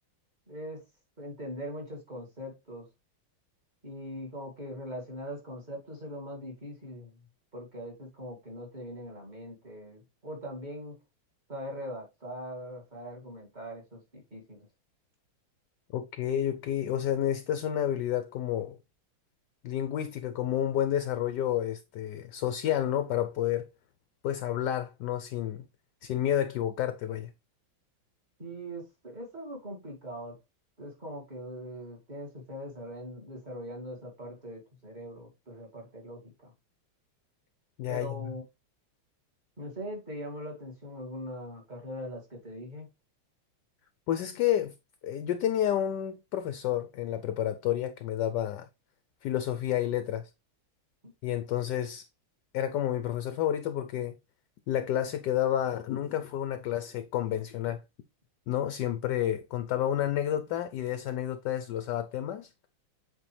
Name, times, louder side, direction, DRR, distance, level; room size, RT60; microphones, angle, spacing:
voice 1, 0.5-0.8 1.2-2.9 3.8-7.3 7.5-11.0 11.5-14.7 28.4-30.4 30.8-36.5 37.9-38.4 39.6-42.9 51.0-51.1, equal, 20° right, 2.2 m, -41 dB
voice 2, 15.9-18.8 19.6-23.7 24.2-25.6 26.0-27.3 37.8-38.3 44.1-44.7 45.0-48.7 49.2-50.3 51.2-52.1 52.5-54.2 54.7-57.8 58.5-62.5, left 11 dB, 75° left, 1.0 m, -30 dB
8.0 x 4.0 x 3.2 m
omnidirectional pair, 2.3 m